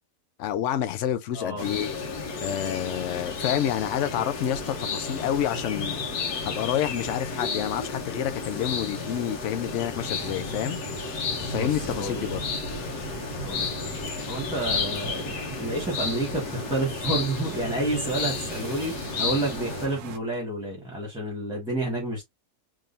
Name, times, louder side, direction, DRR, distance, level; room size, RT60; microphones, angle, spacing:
voice 1, 0.4-2.0 2.4-6.0 6.5-10.8 11.5-12.4, left 10 dB, 65° left, 0.8 m, -28 dB
voice 2, 1.3-1.6 11.5-12.3 13.4-13.7 14.3-22.2, right 2 dB, 5° right, 1.2 m, -30 dB
sound 1, 1.6-19.9, left 4 dB, 90° left, 1.6 m, -32 dB
sound 2, 9.9-20.2, right 7 dB, 80° right, 0.4 m, -42 dB
3.7 x 3.2 x 2.6 m
omnidirectional pair, 1.6 m